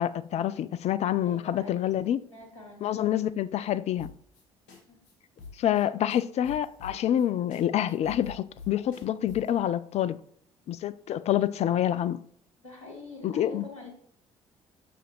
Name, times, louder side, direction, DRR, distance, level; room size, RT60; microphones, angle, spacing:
voice 1, 0.0-2.2 2.8-4.1 5.6-10.2 10.7-12.2 13.2-13.7, left 11 dB, 45° left, 0.4 m, -27 dB
voice 2, 1.2-1.9 2.3-3.2 4.7-5.0 12.6-13.9, left 2 dB, 90° left, 1.2 m, -45 dB
sound 1, 4.0-4.4 4.7-4.8 5.0-5.1 5.4-7.2 7.5-7.6 7.9-9.6, left 5 dB, 70° left, 1.8 m, -45 dB
7.0 x 6.1 x 3.0 m
figure-of-eight pair, 50°, 16 cm